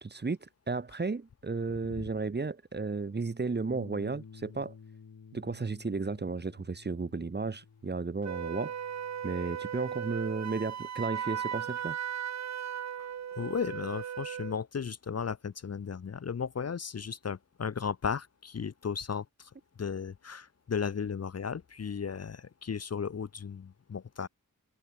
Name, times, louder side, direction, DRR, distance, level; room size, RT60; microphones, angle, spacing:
voice 1, 0.0-4.7 5.3-8.7 9.2-12.0, right 4 dB, 30° right, 0.9 m, -34 dB
Bass guitar, 3.7-9.9, left 5 dB, 65° left, 2.5 m, -53 dB
Wind instrument woodwind instrument, 8.2-14.6, right 8 dB, 50° right, 0.5 m, -37 dB
voice 2, 13.4-19.5 19.8-24.3, left 6 dB, 45° left, 0.7 m, -35 dB
wide cardioid pair, 85°, 35 cm